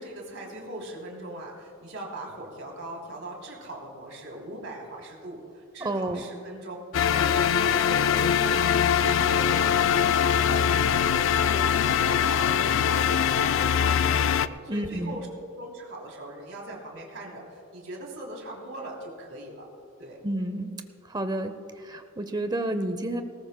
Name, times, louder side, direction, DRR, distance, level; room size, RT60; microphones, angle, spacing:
voice 1, 0.0-6.8 7.1-14.3 14.6-19.7 20.0-20.2, right 1 dB, 65° right, -1 dB, 3.1 m, -40 dB
voice 2, 5.8-6.2 14.7-15.2 20.2-20.7 21.1-23.2, right 1 dB, 20° right, 9 dB, 0.7 m, -30 dB
sound 1, 6.9-14.5, left 8 dB, 60° left, 0.3 m, -22 dB
19.5 x 18.0 x 2.2 m, 2.3 s
head